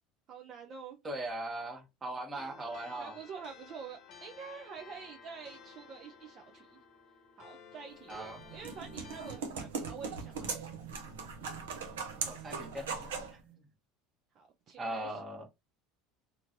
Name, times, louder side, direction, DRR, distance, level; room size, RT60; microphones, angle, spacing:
voice 1, 0.3-1.0 3.0-6.8 7.4-10.7 14.3-15.2, right 6 dB, 50° right, 0.5 m, -47 dB
voice 2, 1.0-3.2 8.1-8.4 12.3-13.6 14.8-15.5, right 1 dB, 25° right, 1.1 m, -40 dB
sound 1, 2.3-9.4, left 6 dB, 50° left, 0.9 m, -54 dB
sound 2, 8.1-13.4, right 5 dB, 80° right, 0.7 m, -40 dB
2.8 x 2.6 x 2.8 m
hypercardioid pair, 80°, 0 cm